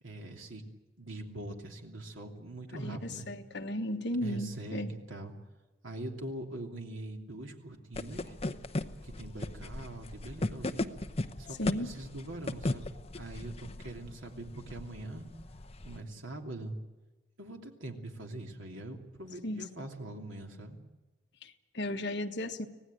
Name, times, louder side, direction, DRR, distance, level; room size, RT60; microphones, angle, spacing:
voice 1, 0.0-0.6 1.0-3.3 4.2-5.3 5.8-8.3 9.0-10.9 11.4-15.3 15.8-16.8 17.4-20.8, right 2 dB, 80° right, 2 dB, 3.0 m, -42 dB
voice 2, 2.7-4.9 11.6-11.9 19.4-19.7 21.4-22.7, left 1 dB, 60° left, 3 dB, 1.5 m, -35 dB
sound 1, 7.9-16.0, left 2 dB, 30° left, 0.8 m, -37 dB
25.5 x 17.5 x 9.2 m, 1.1 s
head